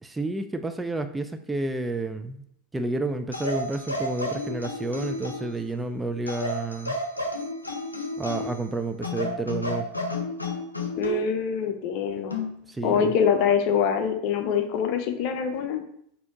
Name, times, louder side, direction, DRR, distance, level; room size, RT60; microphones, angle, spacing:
voice 1, 0.0-2.4 2.7-7.0 8.2-9.9 12.7-13.1, right 2 dB, 10° right, 8 dB, 0.3 m, -30 dB
sound 1, 3.3-5.6 6.3-8.6 9.0-11.2 12.3-12.6, left 1 dB, 90° left, 0.6 m, -31 dB
voice 2, 11.0-12.4 12.8-15.8, left 7 dB, 50° left, 6 dB, 0.6 m, -24 dB
4.2 x 2.7 x 4.6 m, 0.69 s
figure-of-eight pair, 85°, 0 cm